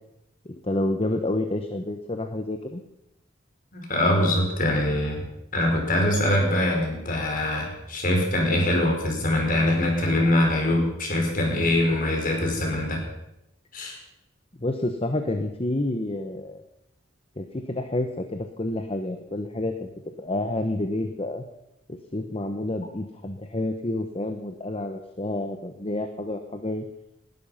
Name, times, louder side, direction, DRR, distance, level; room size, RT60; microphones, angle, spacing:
voice 1, 0.4-2.8 14.6-16.6 17.4-19.9 20.2-21.4 21.9-26.8, left 1 dB, 30° left, 7 dB, 1.1 m, -29 dB
voice 2, 3.7-5.2 5.5-13.0 13.7-14.0, left 1 dB, 45° left, 1 dB, 5.0 m, -23 dB
19.5 x 12.5 x 5.7 m, 0.85 s
head